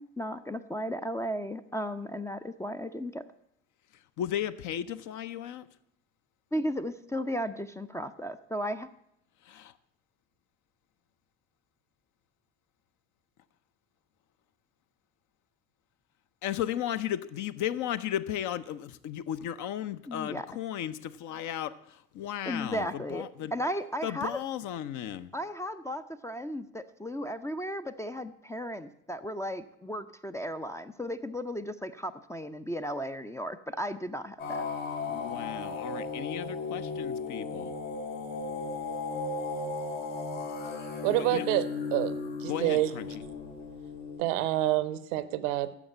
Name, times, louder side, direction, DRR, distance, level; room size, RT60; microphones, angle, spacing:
voice 1, 0.0-3.2 6.5-8.9 20.1-20.5 22.5-24.4 25.3-34.7, equal, 5° left, 9 dB, 0.5 m, -35 dB
voice 2, 4.2-5.7 9.5-9.7 16.4-21.7 22.1-23.5 24.0-25.3 35.1-37.7 41.1-41.4 42.5-43.1, left 10 dB, 45° left, 12 dB, 0.7 m, -35 dB
sound 1, 34.4-44.2, left 4 dB, 70° left, 3.0 m, -36 dB
voice 3, 41.0-42.1 42.4-42.9 44.2-45.7, right 14 dB, 65° right, 16 dB, 0.8 m, -27 dB
9.9 x 7.1 x 8.7 m, 0.77 s
figure-of-eight pair, 60°, 40 cm